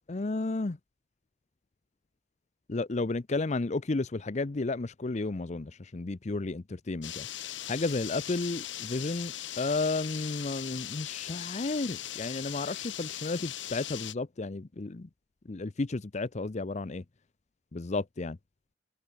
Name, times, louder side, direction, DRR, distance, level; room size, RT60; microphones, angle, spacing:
voice 1, 0.1-0.8 2.7-7.3 7.6-15.1 15.4-17.0 17.7-18.4, left 3 dB, 40° left, 0.6 m, -32 dB
sound 1, 7.0-14.1, left 12 dB, 90° left, 1.4 m, -39 dB
head